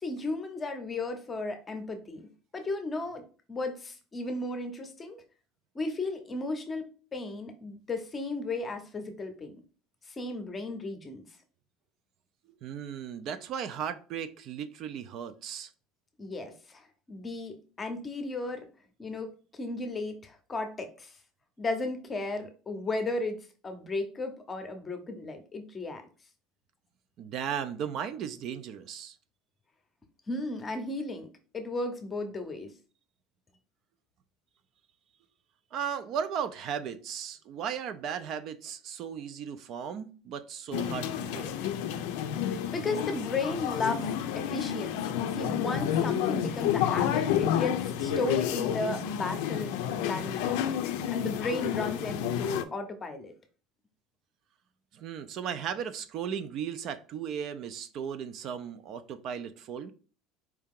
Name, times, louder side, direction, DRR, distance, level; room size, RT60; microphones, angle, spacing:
voice 1, 0.0-2.3 2.5-5.2 5.7-9.5 10.1-11.2 16.2-18.7 19.0-21.2 21.6-23.4 23.6-26.0 30.3-31.3 31.5-32.7 42.7-50.6 51.1-53.3, left 2 dB, 20° left, 0.7 m, -35 dB
voice 2, 12.6-15.7 27.2-29.2 35.7-41.5 54.9-59.9, right 8 dB, 45° right, 0.4 m, -36 dB
sound 1, 40.7-52.6, left 9 dB, 75° left, 0.5 m, -30 dB
4.5 x 2.8 x 3.6 m
cardioid pair, 160°, 0 cm